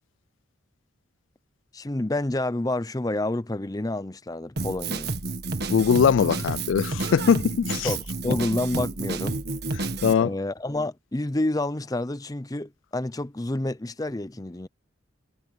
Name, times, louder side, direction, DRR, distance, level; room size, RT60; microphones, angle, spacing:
voice 1, 1.7-5.1 7.8-9.4 10.2-14.7, left 1 dB, 20° left, 0.6 m, -29 dB
Drum kit, 4.6-10.1, right 2 dB, 55° right, 1.7 m, -30 dB
voice 2, 5.7-7.9 8.2-8.3 10.0-10.3, left 7 dB, 70° left, 0.3 m, -21 dB
head